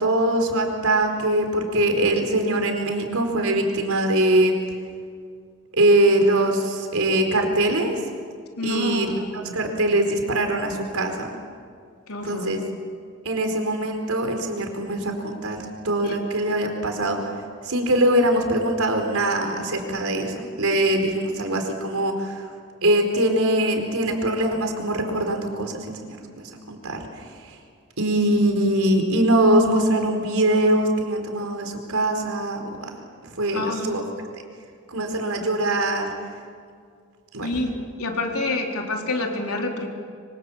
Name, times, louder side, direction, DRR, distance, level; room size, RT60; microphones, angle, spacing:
voice 1, 0.0-4.6 5.7-8.0 8.6-11.3 12.2-12.6 13.2-17.3 17.6-22.4 22.8-25.8 26.1-27.0 27.4-27.5 28.0-32.9 33.3-34.0 34.9-36.1 37.3-37.5, right 1 dB, 80° right, 4 dB, 4.4 m, -22 dB
voice 2, 8.6-9.2 9.4-9.6 12.1-12.5 16.0-16.2 33.5-33.9 37.4-37.7 38.0-39.9, left 2 dB, 85° left, 1 dB, 3.9 m, -27 dB
25.5 x 25.0 x 7.4 m, 2.1 s
head